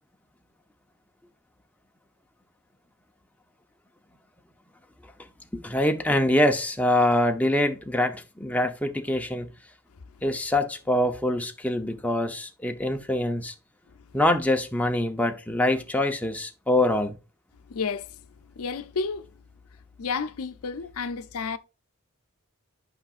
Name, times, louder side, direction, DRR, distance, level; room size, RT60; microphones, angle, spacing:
voice 1, 5.6-9.5 10.2-13.5 14.1-17.2, left 1 dB, 5° left, 0.7 m, -24 dB
voice 2, 17.7-18.2 18.6-19.3 20.0-21.6, left 5 dB, 85° left, 0.5 m, -31 dB
8.7 x 5.7 x 2.4 m
head